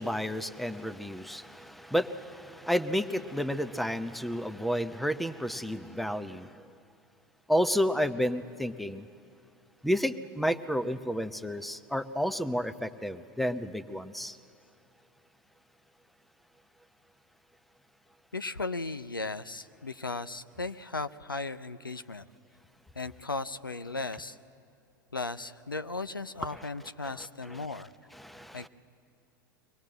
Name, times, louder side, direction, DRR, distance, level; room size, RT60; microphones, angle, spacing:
voice 1, 0.0-6.5 7.5-9.1 9.8-14.4 28.2-28.7, equal, ahead, 12 dB, 0.7 m, -31 dB
voice 2, 18.3-22.3 22.9-24.4 25.1-27.9 28.5-28.7, left 3 dB, 90° left, 11 dB, 0.5 m, -36 dB
24.0 x 19.0 x 7.7 m, 2.7 s
figure-of-eight pair, 85°, 11 cm